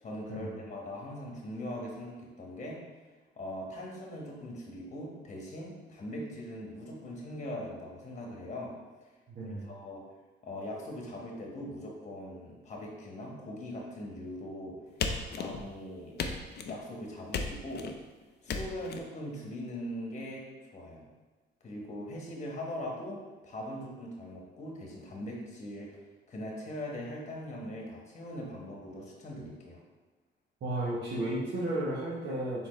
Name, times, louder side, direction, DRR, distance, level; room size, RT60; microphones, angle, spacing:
voice 1, 0.0-2.8 3.4-8.7 9.4-10.0 10.4-14.7 15.3-16.4 16.7-17.9 18.4-20.4 20.7-21.0 21.6-23.2 23.4-25.9 26.3-29.8, left 1 dB, 35° left, -1 dB, 1.2 m, -41 dB
voice 2, 9.3-9.7 30.6-32.7, right 1 dB, 60° right, -7 dB, 1.1 m, -33 dB
sound 1, 15.0-15.8 16.2-16.8 17.3-18.0 18.5-19.0, left 5 dB, 55° left, 0.5 m, -35 dB
4.2 x 3.7 x 3.2 m, 1.3 s
cardioid pair, 90°, 20 cm